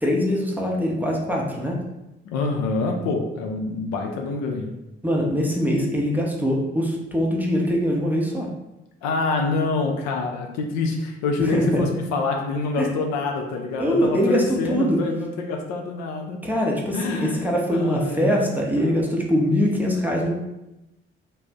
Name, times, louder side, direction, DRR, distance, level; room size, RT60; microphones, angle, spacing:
voice 1, 0.0-1.8 5.0-8.5 11.4-11.8 12.8-12.9 13.8-15.0 16.4-20.3, equal, 5° right, -2 dB, 0.6 m, -23 dB
voice 2, 2.2-4.7 9.0-16.4 16.9-19.1, left 3 dB, 60° left, 2 dB, 0.5 m, -26 dB
2.4 x 2.0 x 3.4 m, 0.95 s
figure-of-eight pair, 40°, 31 cm